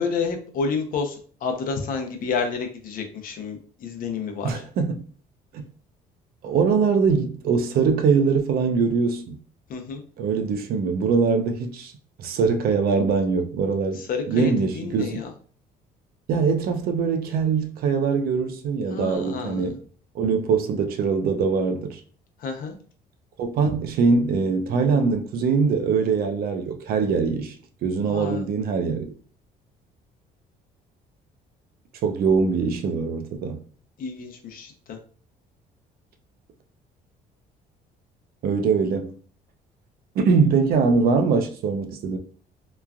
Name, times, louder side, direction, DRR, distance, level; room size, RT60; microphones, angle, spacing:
voice 1, 0.0-4.6 9.7-10.0 14.0-15.3 18.9-19.6 22.4-22.8 28.1-28.4 34.0-35.0, left 5 dB, 55° left, 0.6 m, -30 dB
voice 2, 4.4-5.0 5.5-5.6 6.4-9.4 10.2-11.9 12.2-15.2 16.3-19.8 20.1-22.0 23.4-27.5 27.8-29.1 32.0-33.6 38.4-39.1 40.2-42.2, right 5 dB, 65° right, 0.5 m, -22 dB
3.0 x 2.4 x 2.3 m
cardioid pair, 110°, 17 cm